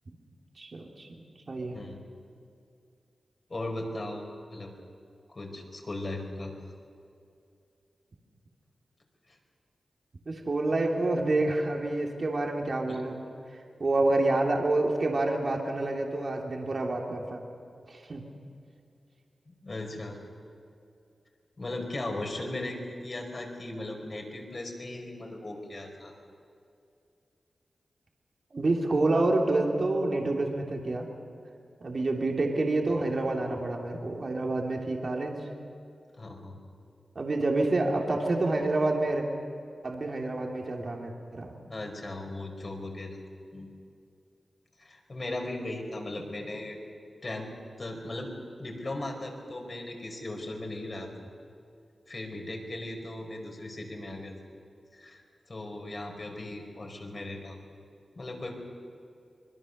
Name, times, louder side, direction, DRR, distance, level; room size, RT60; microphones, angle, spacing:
voice 1, 0.6-1.2 1.5-1.8 10.3-13.2 13.8-17.4 17.9-18.2 28.5-31.1 31.8-35.5 37.1-39.3 39.8-41.6 46.2-46.3, right 2 dB, 55° right, 0 dB, 3.0 m, -28 dB
voice 2, 3.5-4.2 4.5-4.7 5.3-6.5 9.3-9.4 12.9-13.0 19.5-20.2 21.6-26.1 36.1-36.5 41.7-43.2 43.5-43.7 44.8-46.8 47.2-47.5 47.8-48.3 48.6-51.1 52.1-54.3 54.9-55.2 55.5-57.6 58.1-58.6, left 2 dB, 45° left, 2 dB, 4.9 m, -37 dB
25.5 x 21.5 x 6.7 m, 2.5 s
wide cardioid pair, 70°, 0 cm